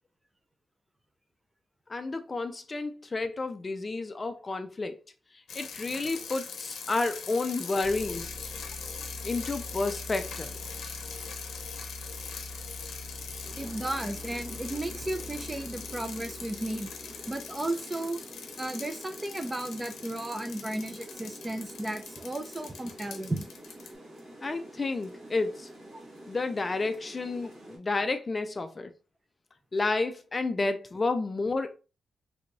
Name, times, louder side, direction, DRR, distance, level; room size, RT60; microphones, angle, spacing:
voice 1, 1.9-5.0 5.5-8.4 9.2-10.5 24.4-25.7 26.3-28.9 29.7-31.8, left 3 dB, 30° left, 0.4 m, -31 dB
sound 1, 5.5-23.9, left 6 dB, 90° left, 0.7 m, -42 dB
sound 2, 7.8-17.6, left 1 dB, 5° right, 1.3 m, -44 dB
Rain, 13.4-27.8, right 1 dB, 60° right, 1.8 m, -48 dB
voice 2, 13.6-16.9 17.3-18.2 18.6-23.4, right 1 dB, 20° right, 0.5 m, -34 dB
3.4 x 3.0 x 2.5 m
cardioid pair, 100°, 0 cm